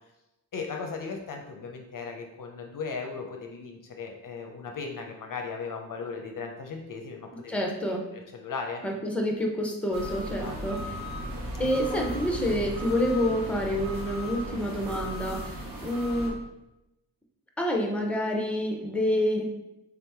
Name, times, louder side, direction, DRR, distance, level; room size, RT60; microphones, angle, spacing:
voice 1, 0.5-7.7 8.1-8.8 10.3-10.8, left 5 dB, 55° left, 3 dB, 0.6 m, -37 dB
voice 2, 7.5-8.0 8.8-10.8 11.6-15.6 15.8-16.4 17.6-19.4, equal, 5° left, 1 dB, 0.8 m, -28 dB
sound 1, 9.9-16.3, equal, 60° right, 1.0 m, -36 dB
3.6 x 2.9 x 3.5 m, 0.93 s
cardioid pair, 55°, 40 cm